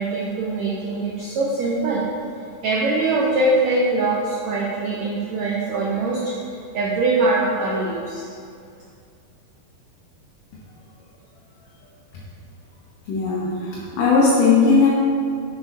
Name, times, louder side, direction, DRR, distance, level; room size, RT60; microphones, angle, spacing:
voice 1, 0.0-2.0 2.6-6.2 6.7-8.2, right 2 dB, 80° right, -4 dB, 1.6 m, -22 dB
voice 2, 13.1-14.9, left 4 dB, 70° left, -5 dB, 2.4 m, -17 dB
6.9 x 6.1 x 5.4 m, 2.3 s
omnidirectional pair, 4.3 m